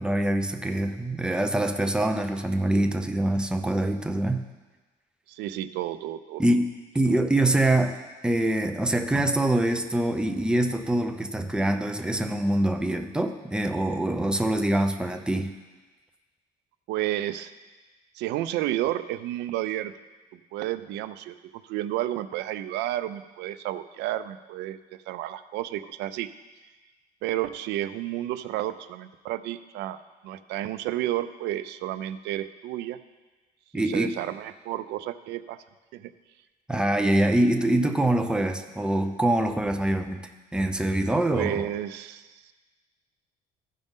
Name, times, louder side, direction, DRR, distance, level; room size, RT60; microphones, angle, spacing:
voice 1, 0.0-4.4 6.4-8.0 8.2-15.5 33.7-34.1 36.7-40.2 40.5-41.7, right 1 dB, 5° right, 6 dB, 0.6 m, -24 dB
voice 2, 5.3-6.4 16.9-17.5 18.1-19.9 20.3-24.8 25.1-26.3 27.2-30.0 30.2-33.0 33.7-35.6 35.9-36.1 41.3-42.5, right 13 dB, 85° right, 13 dB, 0.5 m, -31 dB
14.5 x 5.3 x 3.6 m, 1.3 s
cardioid pair, 110°, 17 cm